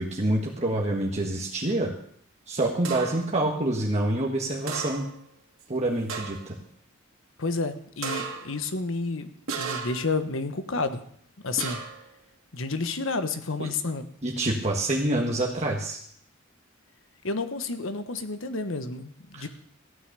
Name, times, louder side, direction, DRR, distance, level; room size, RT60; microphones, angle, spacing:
voice 1, 0.0-1.9 2.5-5.1 5.7-6.6 13.6-13.7 14.2-16.0 19.4-19.5, right 1 dB, 35° right, -1 dB, 1.6 m, -27 dB
sound 1, 2.8-3.3 4.7-5.2 5.6-5.7 6.1-6.5 8.0-8.6 9.5-10.2 11.6-12.1, right 5 dB, 80° right, 2.3 m, -34 dB
voice 2, 7.4-11.0 11.4-11.8 12.5-14.0 17.2-19.5, left 3 dB, 70° left, 10 dB, 1.2 m, -30 dB
15.0 x 9.5 x 6.8 m, 0.64 s
head